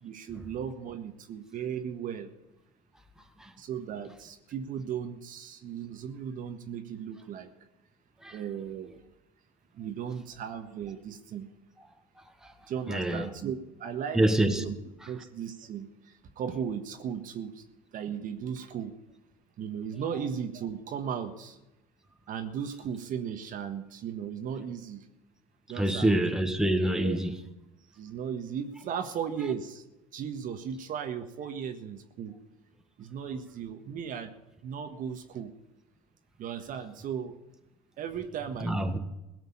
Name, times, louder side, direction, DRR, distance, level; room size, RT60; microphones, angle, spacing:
voice 1, 0.0-2.3 3.6-7.5 8.3-9.1 9.7-11.5 12.7-14.2 14.6-14.8 15.0-17.6 17.9-18.9 19.6-21.6 22.3-25.0 25.7-26.2 26.8-27.2 27.9-29.8 30.1-32.4 33.0-34.4 34.6-35.5 36.4-37.4 38.0-38.9, right 8 dB, 50° right, 1.5 m, -36 dB
voice 2, 12.9-13.3 14.1-14.6 25.8-27.3 38.6-39.0, right 1 dB, 5° right, 1.7 m, -26 dB
17.0 x 6.7 x 9.7 m
hypercardioid pair, 80°, 18 cm